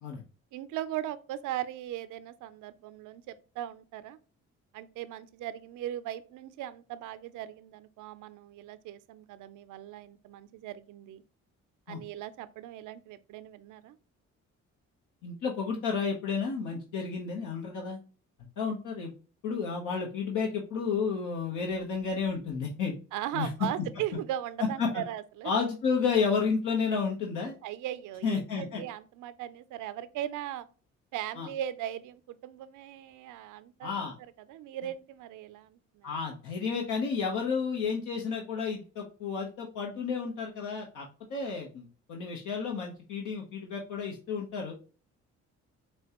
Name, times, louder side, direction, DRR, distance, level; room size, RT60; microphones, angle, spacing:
voice 1, 0.5-4.2 4.7-11.2 11.9-14.0 23.1-25.5 27.6-30.7 31.1-34.1 34.4-36.1, right 12 dB, 80° right, 0.5 m, -38 dB
voice 2, 15.2-18.0 18.6-19.1 19.4-22.9 23.3-23.5 24.8-24.9 25.4-27.6 28.2-28.8 31.4-31.5 33.8-34.1 36.0-41.0 41.3-44.7, left 5 dB, 80° left, 1.1 m, -31 dB
6.1 x 2.3 x 2.9 m
cardioid pair, 90°, 30 cm